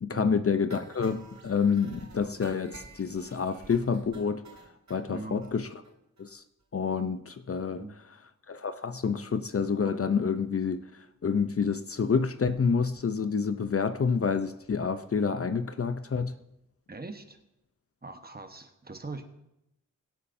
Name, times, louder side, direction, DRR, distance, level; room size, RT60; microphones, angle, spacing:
voice 1, 0.0-4.5 4.9-5.7 6.2-6.4 6.7-7.8 8.5-10.9 11.2-16.4, left 5 dB, 45° left, 0.5 m, -28 dB
sound 1, 0.7-5.0 5.4-5.5 5.8-5.9 6.2-6.3 6.6-6.7, right 3 dB, 60° right, 1.8 m, -51 dB
voice 2, 5.1-5.4 7.7-7.9 16.9-17.4 18.0-19.3, right 3 dB, 30° right, 1.1 m, -41 dB
22.0 x 8.3 x 2.6 m
wide cardioid pair, 75°, 32 cm